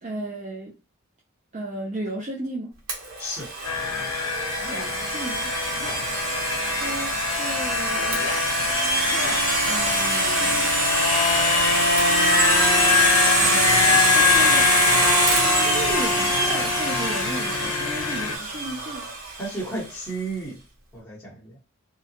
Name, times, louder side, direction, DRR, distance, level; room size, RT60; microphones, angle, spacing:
voice 1, 0.0-0.7 1.5-2.8 4.7-5.5 6.7-8.2 9.6-10.8 13.4-14.7 15.6-19.0, right 2 dB, 35° right, 0.4 m, -34 dB
Domestic sounds home sounds, 2.9-19.7, right 2 dB, 85° right, 0.9 m, -24 dB
voice 2, 3.2-3.5 19.4-20.6 20.9-21.6, right 2 dB, 5° left, 0.9 m, -33 dB
sound 1, 3.6-18.4, left 6 dB, 85° left, 0.5 m, -24 dB
sound 2, 4.5-4.9 5.7-6.1 6.8-7.1 7.9-8.5 9.0-9.5, left 3 dB, 35° left, 0.5 m, -37 dB
2.7 x 2.2 x 2.7 m
head